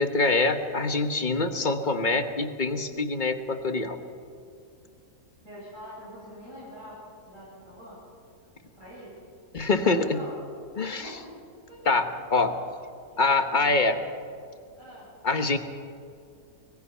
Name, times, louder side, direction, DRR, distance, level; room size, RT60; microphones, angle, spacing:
voice 1, 0.0-4.0 9.5-10.2 10.8-11.1 11.8-12.5 13.2-14.0 15.2-15.6, left 3 dB, 35° left, 7 dB, 1.2 m, -25 dB
voice 2, 5.4-7.0 7.3-8.0 8.4-8.5 8.8-9.2 9.8-10.4 10.8-11.3 11.7-11.8 13.1-13.7 14.8-15.1, equal, 55° right, -7 dB, 7.5 m, -44 dB
24.5 x 19.0 x 5.6 m, 2.3 s
omnidirectional pair, 1.6 m